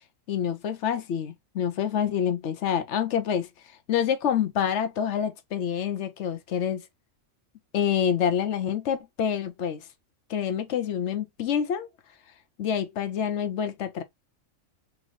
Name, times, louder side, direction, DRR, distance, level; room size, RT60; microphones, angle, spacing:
voice 1, 0.3-3.5 3.9-6.8 7.7-9.8 10.3-11.9 12.6-14.0, left 8 dB, 65° left, 0.9 m, -27 dB
3.9 x 3.0 x 3.1 m
omnidirectional pair, 1.4 m